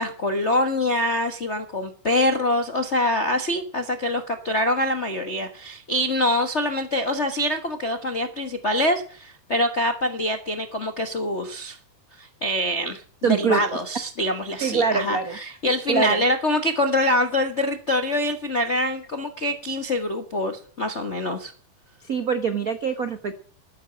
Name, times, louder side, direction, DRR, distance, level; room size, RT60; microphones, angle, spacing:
voice 1, 0.0-11.8 12.2-13.0 13.4-21.5, left 1 dB, 65° left, 5 dB, 0.6 m, -25 dB
voice 2, 13.2-13.6 14.6-15.4 15.9-16.2 22.1-23.3, right 6 dB, 85° right, 9 dB, 0.7 m, -24 dB
12.5 x 9.9 x 9.0 m, 0.43 s
omnidirectional pair, 3.5 m